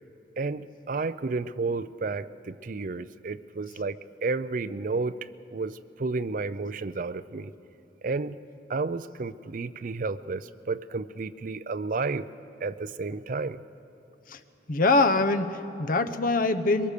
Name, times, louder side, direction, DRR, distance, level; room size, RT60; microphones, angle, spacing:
voice 1, 0.4-7.5 8.0-8.4 8.7-12.3 12.6-13.6, right 3 dB, 50° right, 13 dB, 0.5 m, -32 dB
voice 2, 14.7-16.9, left 3 dB, 50° left, 10 dB, 0.9 m, -23 dB
22.5 x 22.0 x 6.7 m, 2.8 s
head